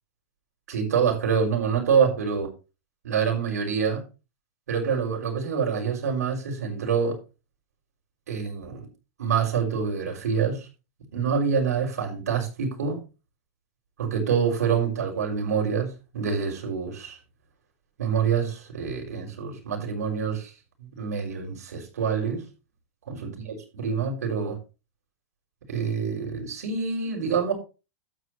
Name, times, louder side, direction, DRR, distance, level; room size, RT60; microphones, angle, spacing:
voice 1, 0.7-2.5 3.0-4.0 4.7-7.2 8.3-8.9 9.2-10.7 11.1-13.0 14.0-17.2 18.0-20.5 20.8-22.4 23.1-24.6 25.7-27.5, right 6 dB, 85° right, 5.9 m, -26 dB
12.5 x 9.3 x 3.3 m
hypercardioid pair, 140°, 8 cm